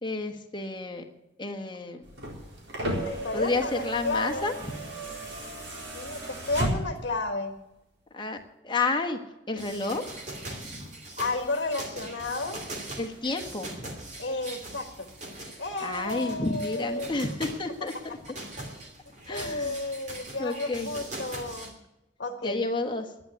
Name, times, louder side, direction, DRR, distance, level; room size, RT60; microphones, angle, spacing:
voice 1, 0.0-1.0 1.4-2.0 3.3-4.9 8.1-8.4 8.6-9.2 9.5-10.0 10.6-10.9 13.0-13.8 15.8-18.2 19.3-19.8 20.4-20.9 22.4-23.1, left 3 dB, 25° left, 4 dB, 1.3 m, -30 dB
sound 1, 2.0-7.2 8.4-8.5, right 1 dB, 75° right, 4.2 m, -34 dB
voice 2, 2.8-4.5 5.9-7.6 11.2-12.6 14.2-15.1 15.6-17.4 19.3-21.8 22.2-22.6, left 2 dB, 60° left, 5 dB, 1.3 m, -32 dB
sound 2, 9.6-21.7, right 2 dB, 40° right, 2.7 m, -41 dB
11.5 x 9.9 x 9.4 m, 0.95 s
head